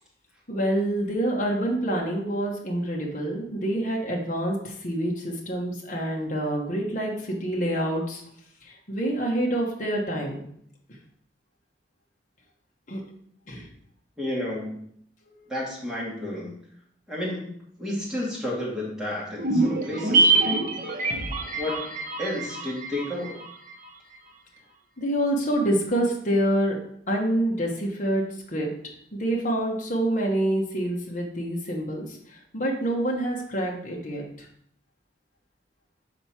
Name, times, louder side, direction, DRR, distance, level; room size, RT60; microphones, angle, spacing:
voice 1, 0.5-8.2 8.6-10.4 12.9-13.0 13.5-13.7 25.0-26.8 27.1-28.7 29.2-32.2 32.5-34.5, right 1 dB, 45° left, -1 dB, 1.2 m, -27 dB
voice 2, 14.2-14.8 15.5-16.5 17.1-20.7 21.0-21.2 21.5-23.4, left 1 dB, 5° right, -6 dB, 2.2 m, -32 dB
sound 1, 19.4-23.9 24.1-24.2, right 3 dB, 50° right, 0.8 m, -25 dB
6.6 x 4.6 x 4.3 m, 0.68 s
head